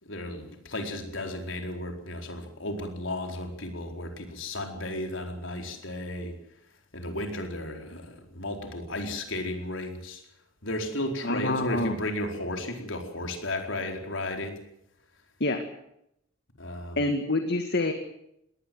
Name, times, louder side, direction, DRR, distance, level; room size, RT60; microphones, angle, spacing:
voice 1, 0.0-6.3 6.9-10.2 10.6-14.6 16.6-17.0, left 1 dB, 70° left, 4 dB, 4.6 m, -34 dB
voice 2, 11.2-11.9 15.4-15.6 17.0-17.9, left 2 dB, 55° left, 6 dB, 2.1 m, -27 dB
21.5 x 18.5 x 7.9 m, 0.78 s
head